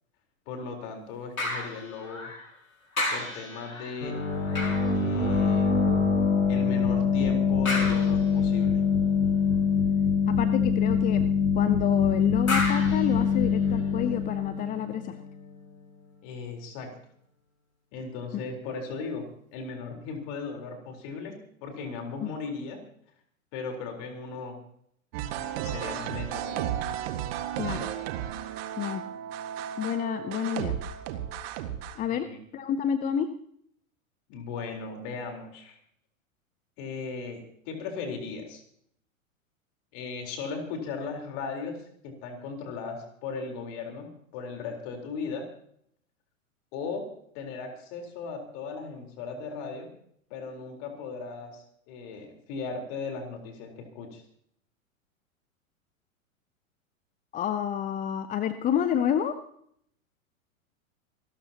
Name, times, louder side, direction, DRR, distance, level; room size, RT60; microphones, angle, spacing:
voice 1, 0.5-2.3 3.1-4.2 4.9-5.7 6.5-8.8 16.2-16.9 17.9-22.8 23.5-24.6 25.4-26.8 32.1-32.4 34.3-35.8 36.8-38.6 39.9-45.5 46.7-49.9 50.3-54.2, left 4 dB, 40° left, 3 dB, 4.1 m, -37 dB
sound 1, 1.4-2.6 2.9-5.8 7.6-8.6 12.5-13.9 14.5-14.6, left 2 dB, 80° left, 5.3 m, -34 dB
sound 2, 4.0-15.5, left 5 dB, 60° left, 7.0 m, -24 dB
voice 2, 10.3-11.3 11.6-15.2 22.2-22.3 27.6-27.9 28.8-29.0 29.8-30.8 32.0-32.3 32.5-33.3 57.3-59.4, left 9 dB, 20° left, 12 dB, 0.7 m, -29 dB
sound 3, 25.1-32.0, right 10 dB, 45° right, 1.8 m, -34 dB
27.5 x 13.5 x 2.9 m, 0.67 s
figure-of-eight pair, 100°, 42 cm